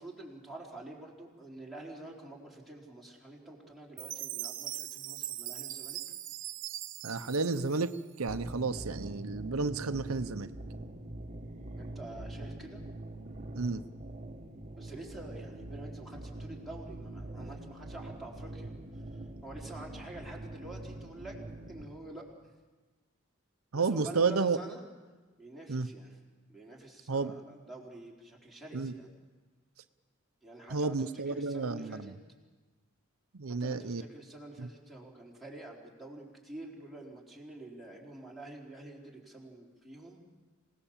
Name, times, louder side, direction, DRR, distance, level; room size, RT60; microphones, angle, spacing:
voice 1, 0.0-6.0 11.8-12.8 14.8-18.7 19.4-21.3 21.7-22.2 23.7-24.8 25.4-26.2 26.5-29.1 30.4-30.9 31.3-32.1 33.6-40.2, right 2 dB, ahead, -3 dB, 4.1 m, -47 dB
Chime, 4.0-8.3, right 14 dB, 65° right, 1.0 m, -41 dB
voice 2, 7.0-7.9 8.2-10.5 13.5-13.8 23.7-24.6 25.7-25.9 27.1-27.3 28.7-28.9 30.7-32.2 33.3-34.0 34.6-34.7, right 4 dB, 90° right, 10 dB, 0.8 m, -31 dB
sound 1, 8.3-21.8, right 1 dB, 35° right, 1.6 m, -44 dB
27.0 x 18.5 x 7.4 m, 1.3 s
head